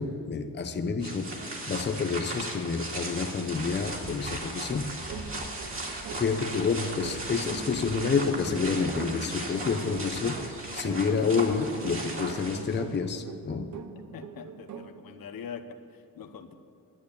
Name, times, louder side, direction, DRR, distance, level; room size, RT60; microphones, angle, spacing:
voice 1, 0.0-1.3 1.7-4.9 6.1-10.4 10.7-13.8, left 5 dB, 30° left, 6 dB, 0.8 m, -29 dB
sound 1, 1.0-12.9, right 2 dB, 40° right, 2.3 m, -37 dB
sound 2, 5.1-15.0, right 6 dB, 55° right, 0.8 m, -43 dB
voice 2, 14.1-16.5, left 6 dB, 80° left, 7 dB, 1.0 m, -43 dB
11.0 x 8.7 x 10.0 m, 2.7 s
wide cardioid pair, 145°, 35 cm